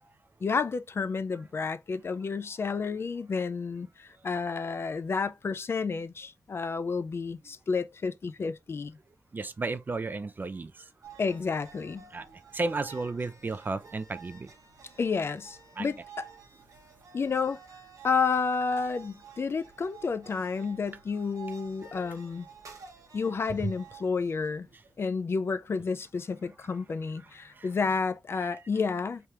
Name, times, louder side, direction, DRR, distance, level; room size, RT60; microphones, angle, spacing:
voice 1, 0.4-9.0 11.2-12.0 15.0-16.3 17.1-17.6 18.0-22.5 23.1-24.7 25.0-29.2, left 5 dB, 50° left, 0.4 m, -30 dB
voice 2, 9.3-10.9 12.1-14.5 15.8-15.9 23.6-23.7 27.5-27.7 28.4-28.6, right 3 dB, 35° right, 0.4 m, -33 dB
sound 1, 11.0-25.0, right 6 dB, 90° right, 0.9 m, -51 dB
3.3 x 2.9 x 3.3 m
wide cardioid pair, 110°, 5 cm